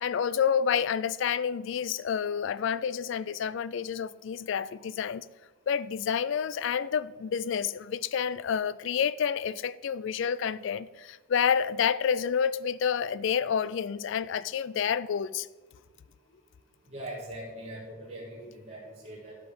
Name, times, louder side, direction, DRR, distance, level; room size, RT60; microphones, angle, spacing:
voice 1, 0.0-5.2 5.7-15.5, left 7 dB, 60° left, 0.3 m, -29 dB
voice 2, 16.9-19.4, right 1 dB, 30° right, 1.7 m, -41 dB
12.5 x 5.1 x 5.2 m
head